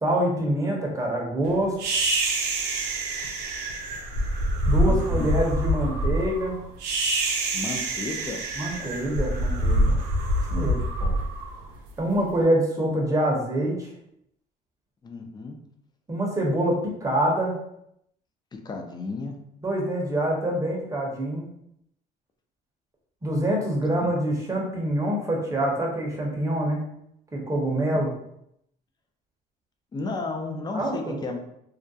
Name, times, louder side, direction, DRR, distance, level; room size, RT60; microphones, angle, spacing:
voice 1, 0.0-1.7 4.6-6.6 8.6-10.0 10.5-10.8 12.0-13.9 16.1-17.6 19.6-21.4 23.2-26.8 27.3-28.1 30.7-31.1, right 1 dB, 20° right, -1 dB, 0.7 m, -25 dB
sound 1, 1.8-12.2, right 1 dB, 85° right, 0.5 m, -26 dB
voice 2, 4.8-5.3 7.5-8.4 8.7-8.9 11.0-11.3 15.0-15.6 18.5-19.3 24.0-24.1 29.9-31.4, left 3 dB, 25° left, 4 dB, 0.4 m, -33 dB
2.3 x 2.1 x 2.6 m, 0.76 s
cardioid pair, 110°, 17 cm